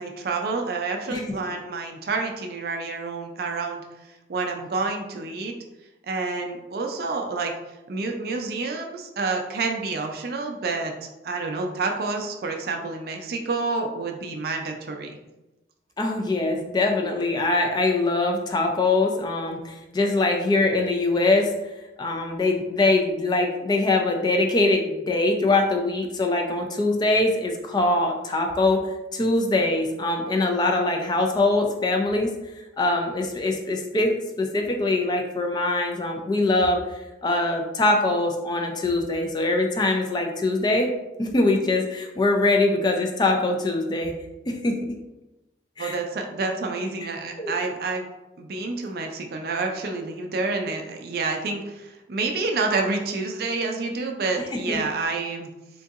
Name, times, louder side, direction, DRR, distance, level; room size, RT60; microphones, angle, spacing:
voice 1, 0.0-3.8 4.3-5.5 6.1-7.5 7.9-10.9 11.2-15.2 45.8-48.1 48.4-55.5, right 3 dB, 55° right, 3 dB, 0.4 m, -28 dB
voice 2, 16.0-21.5 22.0-32.3 32.8-40.9 41.2-44.1 44.5-44.8 45.8-45.9 47.4-47.6 54.5-54.8, left 2 dB, 25° left, 3 dB, 0.4 m, -23 dB
3.7 x 2.6 x 2.4 m, 0.99 s
head